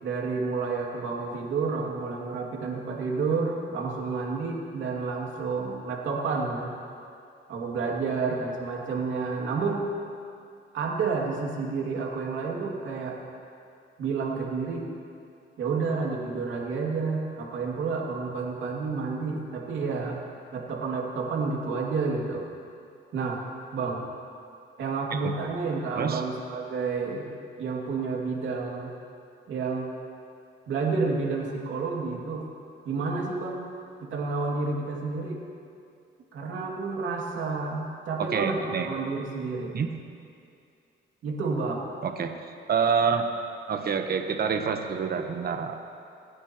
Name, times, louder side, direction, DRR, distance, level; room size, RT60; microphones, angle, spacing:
voice 1, 0.0-6.7 7.5-9.9 10.7-13.2 14.0-14.8 15.6-20.2 20.5-22.5 23.1-23.4 23.7-24.1 24.8-27.3 27.6-28.9 29.5-29.9 30.7-32.5 32.8-33.7 34.0-35.4 36.3-39.8 41.2-41.9, right 4 dB, 70° right, -1 dB, 2.5 m, -30 dB
voice 2, 38.2-38.9 39.7-39.9 42.0-42.4 42.7-43.3 43.7-45.7, right 6 dB, 50° right, 5 dB, 1.1 m, -27 dB
28.5 x 9.9 x 3.0 m, 2.5 s
cardioid pair, 90°, 20 cm